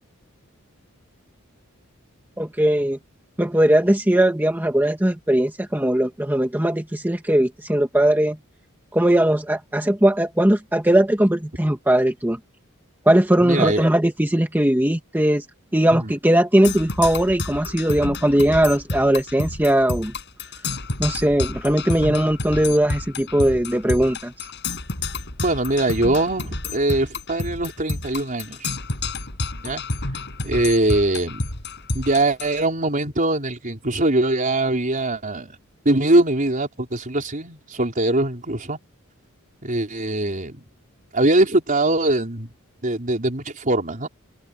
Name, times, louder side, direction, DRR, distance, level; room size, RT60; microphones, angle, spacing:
voice 1, 2.4-3.0 3.4-8.4 8.9-12.4 13.1-15.5 15.7-20.1 21.0-24.5, right 1 dB, 10° right, 1.7 m, -19 dB
voice 2, 13.4-13.8 15.9-16.1 25.4-28.7 29.6-29.8 30.4-31.4 31.9-35.6 35.8-38.8 39.6-40.7 41.1-42.5 42.8-44.1, right 2 dB, 40° right, 4.4 m, -22 dB
Percussion, 16.6-32.6, left 2 dB, 55° left, 8.0 m, -30 dB
open air
head